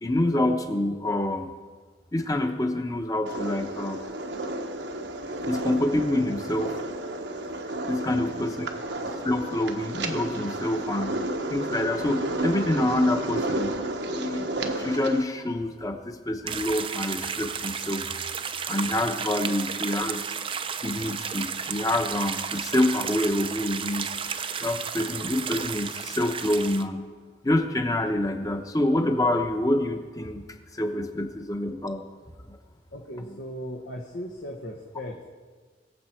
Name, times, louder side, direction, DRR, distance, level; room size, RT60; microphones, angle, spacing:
voice 1, 0.0-1.5 2.1-4.0 5.5-6.7 7.9-8.7 9.0-11.2 11.5-13.8 14.1-18.0 18.7-20.2 20.8-24.1 24.6-27.0 27.4-30.4 30.7-32.0 32.5-32.6 33.3-33.4, left 1 dB, 20° left, 5 dB, 1.0 m, -27 dB
sound 1, 3.3-15.2, right 2 dB, 80° right, 1.1 m, -32 dB
voice 2, 8.1-8.4 8.7-8.8 19.5-19.6 32.9-35.2, equal, 80° left, 0 dB, 1.4 m, -38 dB
sound 2, 16.5-26.8, right 6 dB, 30° right, 0.5 m, -33 dB
22.0 x 7.5 x 4.5 m, 1.4 s
head